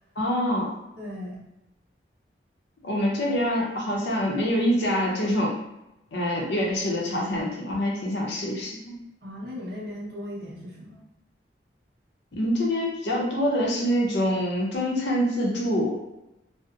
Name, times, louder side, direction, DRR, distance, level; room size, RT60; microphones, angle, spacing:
voice 1, 0.2-0.7 2.8-5.6 6.1-8.9 12.3-16.0, equal, 75° left, -2 dB, 0.6 m, -25 dB
voice 2, 1.0-1.4 9.2-11.0, left 1 dB, 55° right, -5 dB, 0.7 m, -37 dB
2.6 x 2.0 x 2.3 m, 0.89 s
head